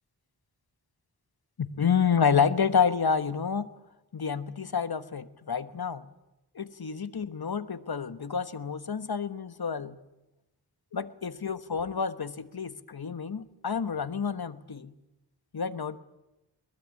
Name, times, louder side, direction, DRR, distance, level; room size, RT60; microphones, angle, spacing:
voice 1, 1.6-3.7 4.1-6.0 6.5-10.0 10.9-14.9 15.5-16.0, left 6 dB, 55° left, 12 dB, 1.2 m, -29 dB
22.5 x 20.0 x 8.5 m, 0.95 s
wide cardioid pair, 55°, 43 cm